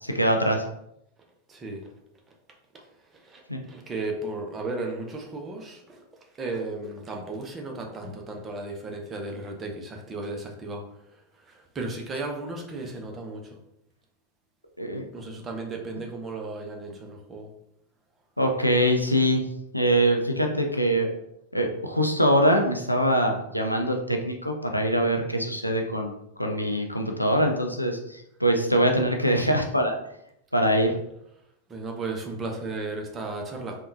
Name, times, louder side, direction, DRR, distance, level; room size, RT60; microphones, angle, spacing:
voice 1, 0.0-0.6 3.5-3.6 14.8-15.1 18.4-19.4 19.7-21.1 21.5-26.1 26.4-29.9 30.5-30.9, equal, 90° left, 2 dB, 0.4 m, -23 dB
voice 2, 1.5-1.8 3.3-3.4 3.7-6.0 6.4-10.8 11.8-13.4 15.1-17.5 31.7-33.7, right 2 dB, 20° right, 1 dB, 0.6 m, -34 dB
3.5 x 2.2 x 2.6 m, 0.79 s
figure-of-eight pair, 90°, 0 cm